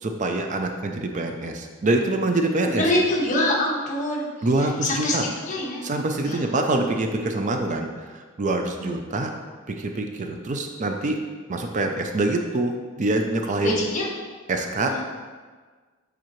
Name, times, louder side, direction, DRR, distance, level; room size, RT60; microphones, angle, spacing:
voice 1, 0.0-2.9 4.4-5.3 5.8-7.9 8.4-9.3 9.7-11.2 11.5-13.8 14.5-15.0, right 2 dB, 35° right, 4 dB, 0.5 m, -25 dB
voice 2, 2.6-4.5 4.8-5.9 6.3-6.5 8.8-9.0 13.6-14.1 14.8-15.0, left 1 dB, 40° left, -4 dB, 1.3 m, -25 dB
7.3 x 5.4 x 3.1 m, 1.5 s
head